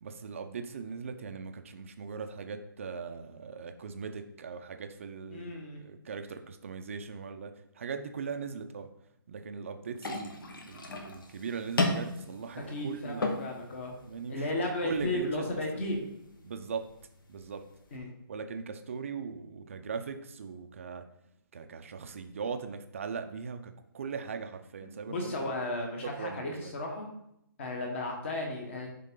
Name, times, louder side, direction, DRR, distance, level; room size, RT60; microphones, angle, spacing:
voice 1, 0.0-8.9 9.3-13.2 14.1-15.9 16.4-16.8 17.3-17.6 18.3-21.0 21.5-25.3 26.0-26.8, right 5 dB, 35° right, 7 dB, 0.5 m, -39 dB
voice 2, 5.3-5.8 12.7-13.9 14.3-16.0 17.9-18.1 25.1-27.1 27.6-28.9, left 2 dB, 30° left, 1 dB, 1.4 m, -34 dB
sound 1, 10.0-18.0, left 2 dB, 65° left, 1.3 m, -37 dB
10.5 x 3.7 x 3.8 m, 0.79 s
hypercardioid pair, 170°, 12 cm